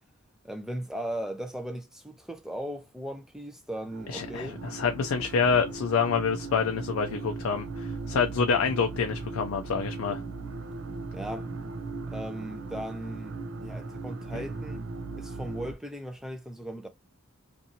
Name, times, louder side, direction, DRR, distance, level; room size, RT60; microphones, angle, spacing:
voice 1, 0.4-4.6 11.1-11.5 12.1-14.8 15.2-16.9, right 1 dB, ahead, 0.4 m, -37 dB
sound 1, 3.8-15.7, right 3 dB, 65° right, 0.5 m, -38 dB
voice 2, 4.1-10.2 14.3-14.4, left 5 dB, 65° left, 0.4 m, -27 dB
2.7 x 2.5 x 2.6 m
head